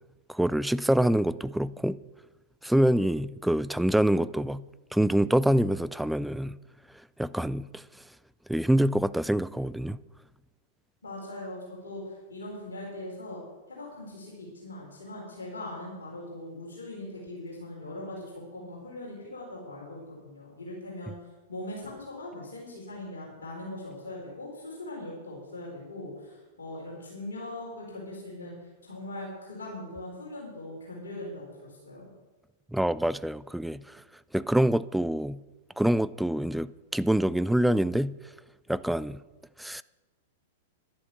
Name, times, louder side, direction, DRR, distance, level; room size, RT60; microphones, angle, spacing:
voice 1, 0.3-2.0 2.6-4.7 4.9-6.6 7.2-7.8 8.5-10.0 32.7-34.0 34.3-35.4 35.8-38.2 38.7-39.2 39.6-39.8, right 1 dB, ahead, 0.4 m, -26 dB
voice 2, 11.0-13.4 13.7-21.1 21.5-32.1, left 1 dB, 70° left, 4.5 m, -40 dB
11.5 x 10.5 x 7.0 m
figure-of-eight pair, 100°, 0 cm